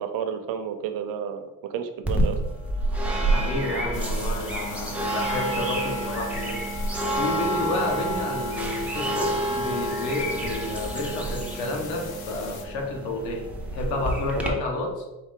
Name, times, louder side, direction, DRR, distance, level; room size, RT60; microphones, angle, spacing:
voice 1, 0.0-2.4 14.3-14.5, right 8 dB, 55° right, 8 dB, 0.6 m, -31 dB
sound 1, 2.0-14.5, right 1 dB, 5° right, 0.3 m, -28 dB
voice 2, 3.3-6.6 7.1-15.1, left 2 dB, 85° left, 1 dB, 1.2 m, -30 dB
sound 2, 3.9-12.7, left 7 dB, 60° left, 0.7 m, -43 dB
4.6 x 3.0 x 3.6 m, 1.0 s
cardioid pair, 150°, 41 cm